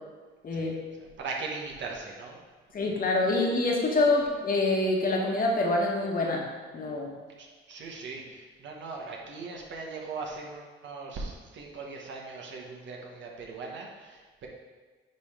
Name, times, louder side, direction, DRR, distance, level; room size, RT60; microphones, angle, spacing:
voice 1, 0.5-2.4 7.4-14.5, right 4 dB, 70° right, -1 dB, 1.3 m, -39 dB
voice 2, 2.7-6.4 6.7-7.1, left 2 dB, 45° left, -1 dB, 1.4 m, -26 dB
9.7 x 3.3 x 3.8 m, 1.4 s
cardioid pair, 90°, 20 cm